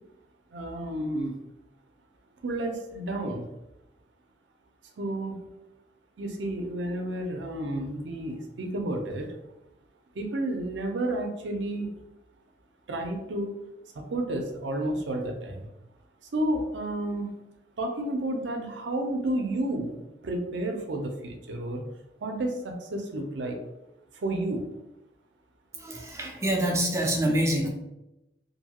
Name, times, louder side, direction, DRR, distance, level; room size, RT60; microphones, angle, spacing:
voice 1, 0.5-1.4 2.4-3.5 5.0-5.5 6.2-9.3 10.1-11.9 12.9-13.5 13.9-15.7 16.3-17.3 17.8-20.0 20.2-21.8 22.2-23.6 24.1-24.7, right 1 dB, 70° right, 3 dB, 0.5 m, -31 dB
voice 2, 25.7-27.7, right 1 dB, 15° right, 0 dB, 0.4 m, -26 dB
2.6 x 2.3 x 2.8 m, 0.92 s
head